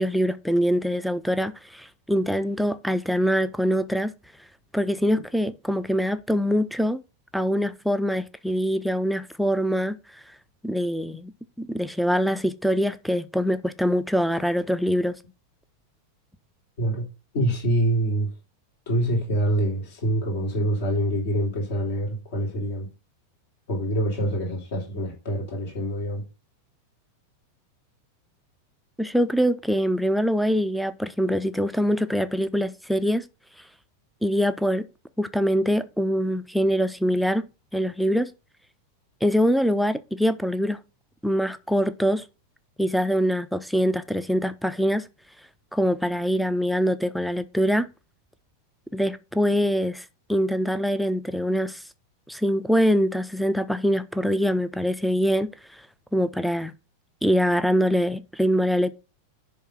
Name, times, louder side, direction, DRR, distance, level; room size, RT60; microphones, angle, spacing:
voice 1, 0.0-4.1 4.7-7.0 7.3-10.0 10.6-15.2 29.0-33.2 34.2-34.9 35.2-38.3 39.2-40.8 41.2-42.2 42.8-45.1 45.7-47.9 48.9-51.8 52.3-55.5 56.1-56.7 57.2-58.9, equal, ahead, 0.6 m, -24 dB
voice 2, 17.3-18.3 18.9-22.9 23.7-26.2, right 1 dB, 55° left, 3.4 m, -25 dB
10.5 x 3.6 x 5.6 m
figure-of-eight pair, 90°, 0 cm